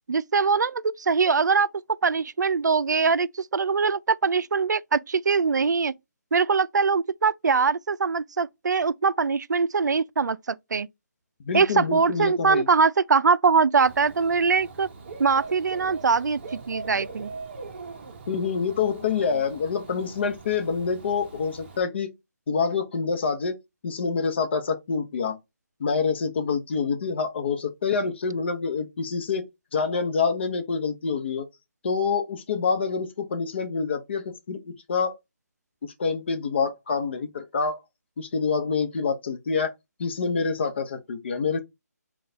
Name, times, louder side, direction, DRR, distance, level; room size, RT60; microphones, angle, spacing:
voice 1, 0.1-1.7 2.0-5.9 6.3-10.9 11.5-14.9 15.2-17.3, right 5 dB, 90° right, 0.3 m, -22 dB
voice 2, 11.5-12.7 18.3-22.1 22.5-23.6 23.8-25.4 25.8-31.5 31.8-35.2 35.8-37.8 38.2-39.7 40.0-41.6, left 5 dB, 40° left, 0.7 m, -27 dB
Dog / Bird, 13.8-21.8, right 4 dB, 40° right, 0.8 m, -42 dB
3.9 x 2.3 x 3.9 m
hypercardioid pair, 165°, 9 cm